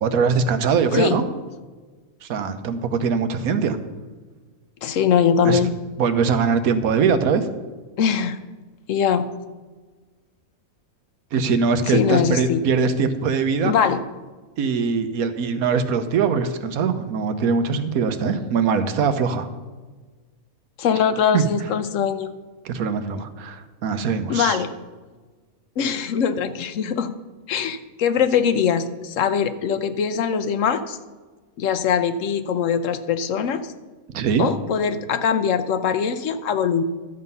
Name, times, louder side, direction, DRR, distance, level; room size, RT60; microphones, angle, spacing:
voice 1, 0.0-1.2 2.2-3.8 5.4-5.6 6.0-7.5 11.3-13.7 14.6-19.5 21.3-21.4 22.6-24.6 34.1-34.5, right 5 dB, 85° right, 10 dB, 1.3 m, -22 dB
voice 2, 4.8-5.7 8.0-8.4 8.9-9.3 11.9-12.6 13.6-14.0 20.8-22.3 24.3-24.7 25.8-27.1 27.5-31.0 31.6-33.7 34.4-36.8, left 7 dB, 65° left, 11 dB, 1.0 m, -22 dB
12.5 x 7.6 x 5.5 m, 1.3 s
omnidirectional pair, 1.5 m